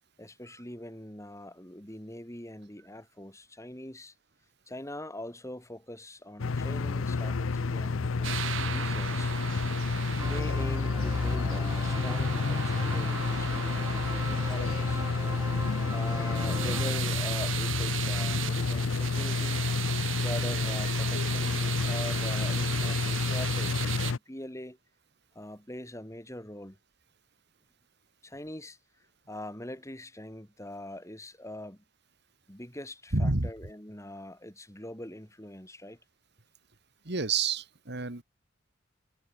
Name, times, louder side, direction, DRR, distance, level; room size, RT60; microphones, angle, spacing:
voice 1, 0.2-4.1 4.7-9.3 10.2-15.0 15.9-19.6 20.2-24.8 25.3-26.8 28.2-28.8 29.3-31.8 32.5-36.0, left 1 dB, 15° left, 6.6 m, -43 dB
sound 1, 6.4-24.2, left 4 dB, 90° left, 0.6 m, -29 dB
sound 2, 8.2-24.1, right 10 dB, 80° right, 2.4 m, -37 dB
sound 3, 10.2-16.9, right 2 dB, 15° right, 5.4 m, -41 dB
voice 2, 33.1-33.5 37.0-38.2, right 3 dB, 60° right, 2.2 m, -29 dB
head